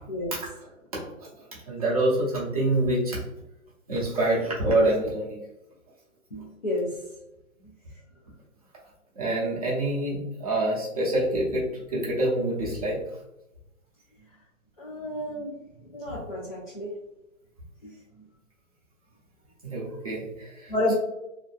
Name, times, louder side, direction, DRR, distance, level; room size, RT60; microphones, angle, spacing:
voice 1, 1.7-3.2 3.9-5.4 9.2-11.7 11.9-13.0 19.6-20.9, right 1 dB, 25° right, -6 dB, 0.6 m, -26 dB
voice 2, 6.3-6.9 14.8-15.6 15.9-16.9 17.8-17.9 20.7-20.9, left 1 dB, 35° left, -6 dB, 0.4 m, -30 dB
2.6 x 2.1 x 2.3 m, 0.91 s
hypercardioid pair, 165°, 42 cm